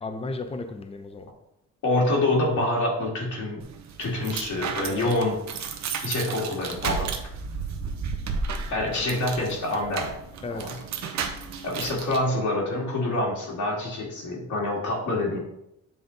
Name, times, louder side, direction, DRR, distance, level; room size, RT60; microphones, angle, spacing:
voice 1, 0.0-1.3 4.9-5.1 10.4-10.7 15.3-15.4, left 3 dB, 20° left, 6 dB, 0.7 m, -34 dB
voice 2, 1.8-3.7 4.0-5.4 6.0-7.1 8.7-10.1 10.5-10.8 11.6-15.4, left 2 dB, 70° left, -3 dB, 2.3 m, -26 dB
sound 1, 3.6-12.2, right 5 dB, 65° right, 0.9 m, -33 dB
8.0 x 3.6 x 4.0 m, 0.82 s
cardioid pair, 90°, 30 cm